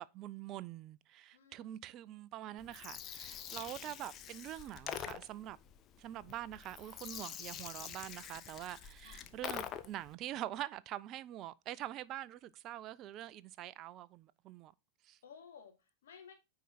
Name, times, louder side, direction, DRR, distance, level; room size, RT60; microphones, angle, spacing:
voice 1, 0.0-5.6 6.0-14.7 15.0-15.2, right 13 dB, 35° right, 0.5 m, -45 dB
voice 2, 1.3-1.9 3.5-3.8 9.0-9.3 15.2-16.3, left 7 dB, 60° left, 2.6 m, -57 dB
Gurgling, 2.6-10.1, left 9 dB, 30° left, 0.8 m, -46 dB
9.1 x 4.8 x 4.2 m
figure-of-eight pair, 90°, 0 cm